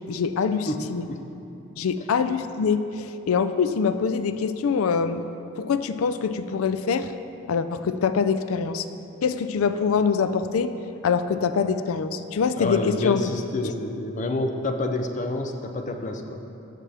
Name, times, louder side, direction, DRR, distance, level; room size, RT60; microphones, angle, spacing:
voice 1, 0.1-1.1 1.8-5.2 5.6-7.1 7.5-8.9 9.2-10.7 11.0-13.2 13.6-13.7, left 6 dB, 85° left, 11 dB, 0.4 m, -24 dB
voice 2, 0.7-1.2 12.6-16.4, left 2 dB, 35° left, 5 dB, 0.6 m, -28 dB
14.5 x 5.9 x 3.4 m, 2.8 s
head